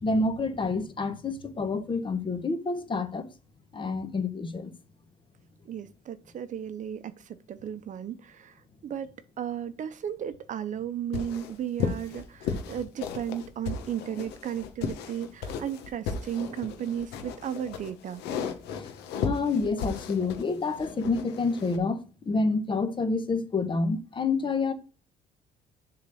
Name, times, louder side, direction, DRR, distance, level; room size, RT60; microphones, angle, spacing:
voice 1, 0.0-3.3 3.7-4.7 18.7-18.9 19.2-24.7, left 3 dB, 30° left, 1.2 m, -28 dB
voice 2, 5.6-18.2, right 9 dB, 50° right, 0.7 m, -35 dB
sound 1, 11.1-21.8, left 6 dB, 85° left, 1.2 m, -35 dB
7.3 x 3.9 x 6.3 m
cardioid pair, 110°, 17 cm